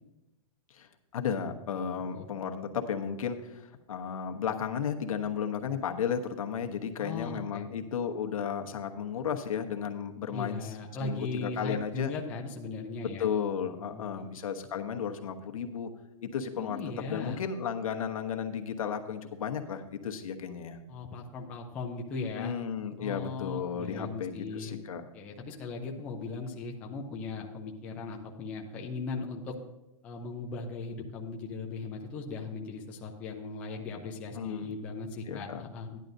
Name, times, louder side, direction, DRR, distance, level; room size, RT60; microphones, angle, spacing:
voice 1, 0.7-10.7 11.0-12.1 13.2-15.9 16.2-20.8 22.4-25.0 34.3-34.7 35.3-35.6, left 7 dB, 70° left, 5 dB, 1.1 m, -34 dB
voice 2, 7.0-7.7 10.3-13.3 13.8-14.3 16.6-17.4 20.9-22.5 23.0-24.8 25.1-29.6 30.0-36.0, left 3 dB, 5° left, 0 dB, 0.4 m, -38 dB
14.0 x 10.5 x 2.6 m, 0.93 s
hypercardioid pair, 170°, 18 cm